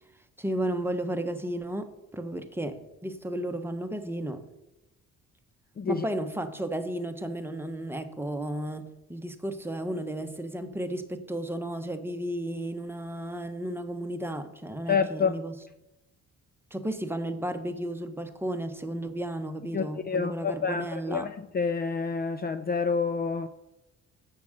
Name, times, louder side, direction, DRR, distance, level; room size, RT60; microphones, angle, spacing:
voice 1, 0.4-4.4 5.9-15.5 16.7-21.3, right 1 dB, 5° right, 6 dB, 1.0 m, -33 dB
voice 2, 14.9-15.4 19.7-23.5, left 5 dB, 30° left, 10 dB, 0.5 m, -28 dB
8.2 x 7.5 x 6.5 m, 0.95 s
cardioid pair, 90°, 30 cm